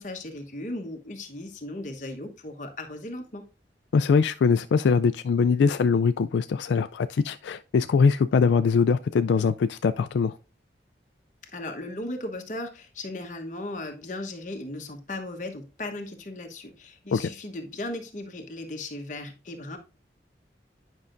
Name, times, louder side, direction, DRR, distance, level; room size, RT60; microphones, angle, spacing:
voice 1, 0.0-3.5 11.4-19.8, left 1 dB, 45° left, 1.1 m, -37 dB
voice 2, 3.9-10.3 17.1-17.3, left 5 dB, 85° left, 0.3 m, -22 dB
9.6 x 5.5 x 2.6 m
head